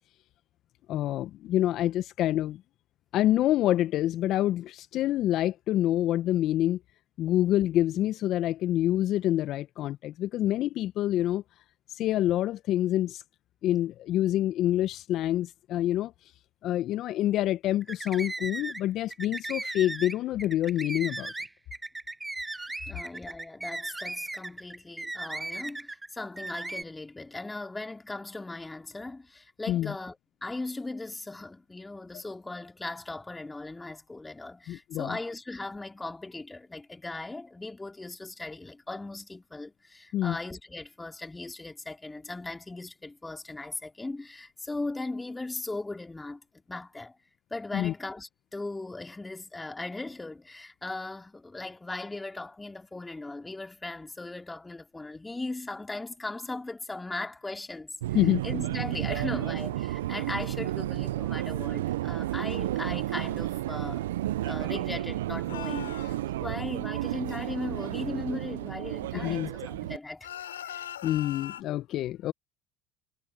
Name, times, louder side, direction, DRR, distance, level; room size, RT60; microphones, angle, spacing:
voice 1, 0.9-2.6 3.1-6.8 7.2-11.4 11.9-13.2 13.6-16.1 16.6-21.3 29.7-29.9 34.7-35.2 40.1-40.4 47.7-47.9 58.1-58.4 69.2-69.5 71.0-72.3, left 13 dB, 55° left, 1.3 m, -27 dB
sound 1, 17.8-18.8 19.1-26.1 26.4-26.8, right 2 dB, 15° right, 0.7 m, -37 dB
voice 2, 22.9-46.4 46.7-47.2 47.5-57.9 58.4-64.1 64.4-66.1 66.4-70.3 70.6-70.8, left 2 dB, 15° left, 3.3 m, -38 dB
Subway metro underground, 58.0-70.0, right 15 dB, 80° right, 0.7 m, -32 dB
sound 2, 65.5-66.2 70.2-71.6, left 11 dB, 85° left, 4.9 m, -40 dB
hypercardioid pair, 70°, 0 cm